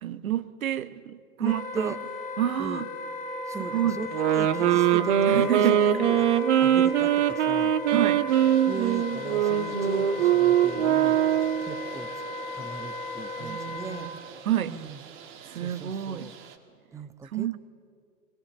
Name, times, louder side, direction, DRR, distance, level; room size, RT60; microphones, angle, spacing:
voice 1, 0.0-1.9 2.4-2.9 3.6-4.0 5.3-6.1 7.9-8.3 13.4-14.2 14.4-14.8 15.4-16.3 17.2-17.6, right 11 dB, 65° right, 14 dB, 1.3 m, -29 dB
Wind instrument woodwind instrument, 1.4-14.1, left 3 dB, 20° left, 2.7 m, -36 dB
voice 2, 1.4-2.0 2.6-2.9 3.5-5.7 6.1-6.3 6.6-7.7 8.7-11.2 11.6-12.1 12.5-14.1 14.7-15.0 15.6-16.3 16.9-17.6, right 5 dB, 5° right, 12 dB, 0.8 m, -38 dB
sound 1, 4.1-11.7, right 10 dB, 50° right, 1.5 m, -22 dB
sound 2, 8.3-16.6, right 7 dB, 30° right, 2.1 m, -45 dB
23.0 x 20.5 x 8.1 m, 2.1 s
hypercardioid pair, 115°, 44 cm